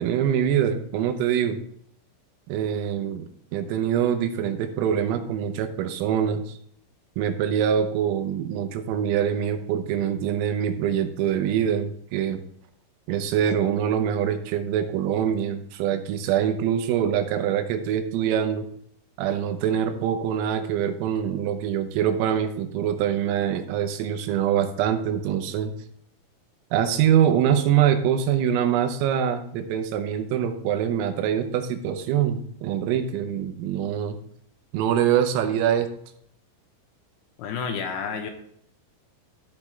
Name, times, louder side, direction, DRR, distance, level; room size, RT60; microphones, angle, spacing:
voice 1, 0.0-1.6 2.5-3.3 3.5-6.6 7.2-12.4 13.1-18.7 19.2-25.7 26.7-34.2 34.7-35.9, right 9 dB, 85° right, 7 dB, 3.5 m, -24 dB
voice 2, 37.4-38.3, left 6 dB, 75° left, 4 dB, 3.1 m, -30 dB
14.0 x 5.9 x 3.2 m, 0.69 s
omnidirectional pair, 6.0 m